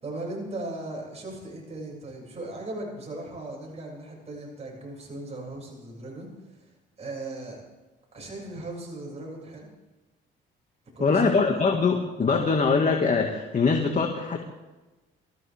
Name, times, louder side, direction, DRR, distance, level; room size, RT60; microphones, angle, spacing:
voice 1, 0.0-6.7 7.0-7.6 8.1-9.7 11.0-11.4, right 2 dB, 30° right, -3 dB, 7.0 m, -38 dB
voice 2, 11.0-14.4, left 4 dB, 40° left, 2 dB, 2.2 m, -23 dB
24.5 x 15.0 x 3.7 m, 1.1 s
cardioid pair, 90°, 20 cm